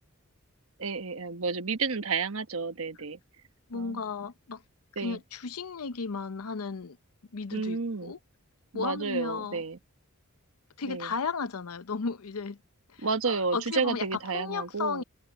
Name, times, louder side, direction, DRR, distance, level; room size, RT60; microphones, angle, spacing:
voice 1, 0.8-3.2 3.7-4.0 5.0-5.2 7.5-8.1 8.7-9.8 10.9-11.1 13.0-15.0, right 4 dB, 65° right, 1.3 m, -31 dB
voice 2, 3.7-4.6 5.0-7.0 7.3-8.2 8.7-9.6 10.8-12.6 12.9-15.0, left 4 dB, 85° left, 0.7 m, -34 dB
head